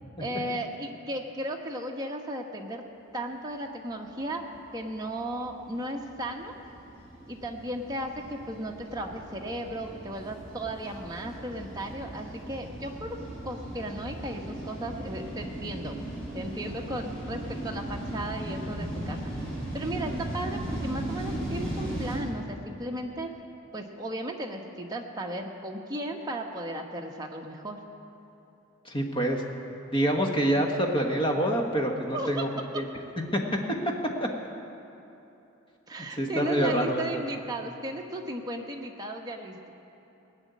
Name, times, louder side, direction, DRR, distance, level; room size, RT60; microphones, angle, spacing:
voice 1, 0.2-2.8 3.1-4.5 4.7-6.5 7.3-13.2 13.4-16.1 16.3-19.2 19.7-23.3 23.7-27.8 32.1-32.4 35.9-39.7, right 1 dB, 20° right, 1 dB, 1.0 m, -35 dB
sound 1, 4.4-22.2, right 1 dB, 5° left, 4.1 m, -37 dB
voice 2, 28.8-29.4 29.9-32.5 32.7-32.9 33.3-33.4 34.2-34.3 36.2-37.2, right 1 dB, 25° left, 2 dB, 1.3 m, -26 dB
18.0 x 6.3 x 9.3 m, 3.0 s
head